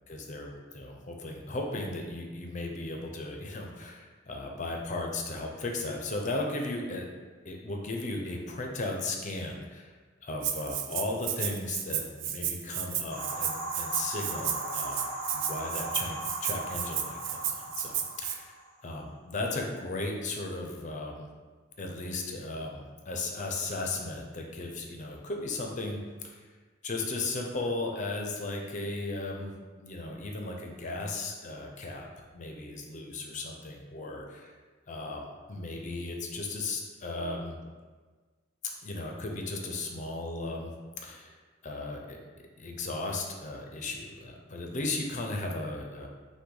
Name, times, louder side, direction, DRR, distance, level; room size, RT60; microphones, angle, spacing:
voice 1, 0.1-7.1 7.4-9.9 10.2-15.1 15.3-18.5 18.8-21.3 21.8-26.4 26.8-29.5 29.8-32.1 32.3-34.2 34.9-37.6 38.8-40.7 41.0-41.4 41.6-42.2 42.6-46.1, left 2 dB, 40° left, 2 dB, 0.6 m, -36 dB
Rattle (instrument), 10.4-18.4, right 9 dB, 65° right, 0.4 m, -33 dB
sound 1, 13.1-18.8, right 1 dB, 90° right, 1.1 m, -38 dB
5.6 x 2.2 x 3.8 m, 1.4 s
head